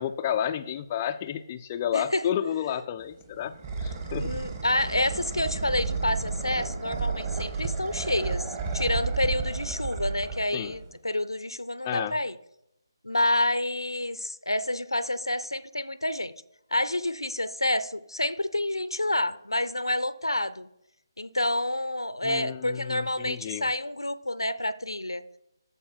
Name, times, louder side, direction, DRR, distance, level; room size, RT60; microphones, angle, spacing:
voice 1, 0.0-4.3 10.5-10.7 11.8-12.2 22.2-23.7, left 9 dB, 20° left, 7 dB, 0.3 m, -31 dB
voice 2, 1.9-2.2 4.2-8.4 8.7-12.3 13.0-16.3 16.7-20.7 21.2-25.2, left 1 dB, 80° left, 15 dB, 0.6 m, -28 dB
sound 1, 3.0-11.0, right 4 dB, 25° right, 1.2 m, -32 dB
13.5 x 4.7 x 4.4 m, 0.81 s
figure-of-eight pair, 150°, 2 cm